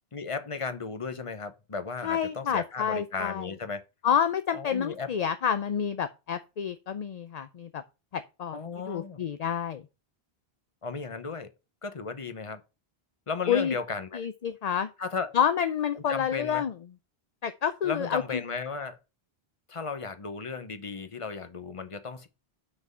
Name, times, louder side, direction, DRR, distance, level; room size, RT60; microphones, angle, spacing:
voice 1, 0.1-3.8 4.5-5.1 8.5-9.2 10.8-11.5 11.8-12.6 13.3-14.2 15.0-15.3 15.9-16.6 17.8-19.0 19.7-22.3, left 4 dB, 35° left, 0.9 m, -35 dB
voice 2, 2.0-3.5 4.0-7.8 8.1-9.8 13.5-13.7 14.1-14.9 15.3-16.7 17.4-18.4, left 8 dB, 50° left, 0.6 m, -29 dB
6.0 x 5.5 x 5.5 m
omnidirectional pair, 1.0 m